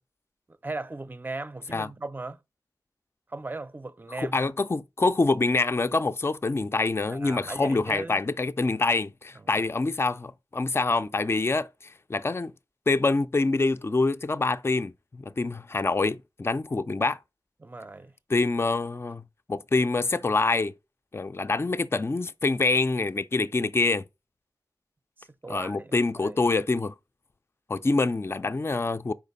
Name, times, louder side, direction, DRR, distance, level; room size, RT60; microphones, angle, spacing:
voice 1, 0.6-2.4 3.3-4.5 7.1-8.2 17.6-18.1 25.4-26.4, right 2 dB, 25° right, 0.5 m, -37 dB
voice 2, 4.1-12.5 12.9-17.2 18.3-19.2 19.5-20.7 21.1-24.0 25.5-26.9 27.7-29.1, left 3 dB, 30° left, 0.4 m, -26 dB
5.0 x 4.3 x 5.4 m
wide cardioid pair, 80°, 8 cm